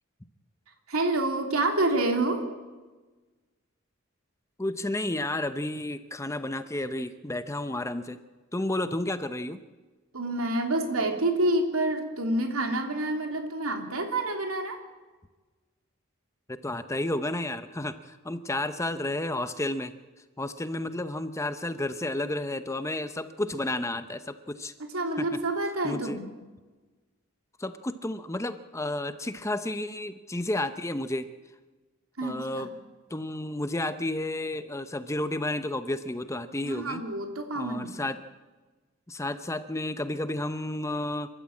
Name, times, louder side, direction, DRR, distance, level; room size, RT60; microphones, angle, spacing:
voice 1, 0.9-2.5 10.1-14.8 24.8-26.3 32.2-32.7 36.6-38.0, right 2 dB, 90° right, 4 dB, 3.2 m, -28 dB
voice 2, 4.6-8.2 8.5-9.6 16.5-19.9 20.4-24.7 25.2-25.3 25.8-26.2 27.6-31.3 32.2-32.7 33.1-37.0 37.5-38.2 39.1-41.3, left 1 dB, 15° left, 11 dB, 0.8 m, -31 dB
28.5 x 13.0 x 8.5 m, 1.3 s
head